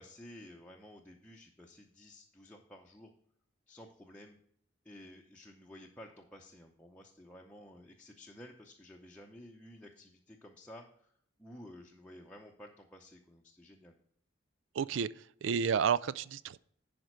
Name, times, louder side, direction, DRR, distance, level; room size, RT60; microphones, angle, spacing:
voice 1, 0.0-3.1 3.7-4.4 4.8-11.1 11.4-14.0, left 1 dB, 5° left, 0.7 m, -53 dB
voice 2, 14.8-15.1 15.4-16.6, right 7 dB, 75° right, 0.4 m, -30 dB
10.5 x 5.0 x 4.6 m
head